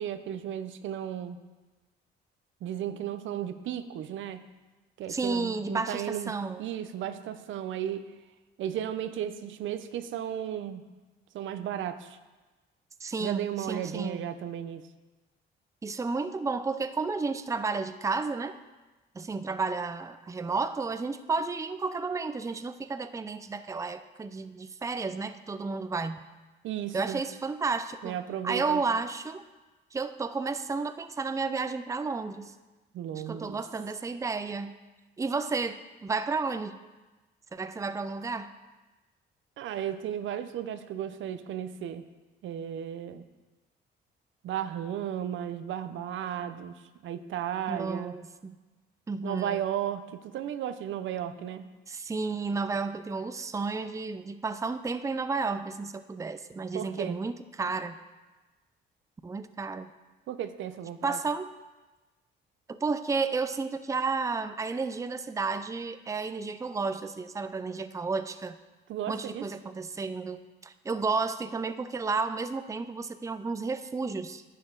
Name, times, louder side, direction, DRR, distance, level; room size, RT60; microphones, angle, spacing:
voice 1, 0.0-1.4 2.6-4.4 5.0-8.1 8.6-10.9 11.3-12.2 13.2-14.8 26.6-27.2 28.0-28.8 32.9-33.6 39.6-42.0 42.4-43.2 44.4-48.2 49.2-51.7 56.7-57.2 60.3-61.2 68.9-69.4, right 10 dB, 75° right, 11 dB, 0.6 m, -34 dB
voice 2, 5.1-6.7 13.0-14.2 15.8-18.6 19.1-26.2 26.9-28.2 28.4-29.4 29.9-32.5 33.2-34.7 35.2-36.8 37.5-38.5 47.7-48.6 49.1-49.6 51.9-58.0 59.2-59.9 61.0-61.5 62.7-68.6 69.1-74.4, right 4 dB, 15° right, 11 dB, 0.5 m, -32 dB
10.5 x 8.3 x 3.8 m, 1.2 s
cardioid pair, 90°, 20 cm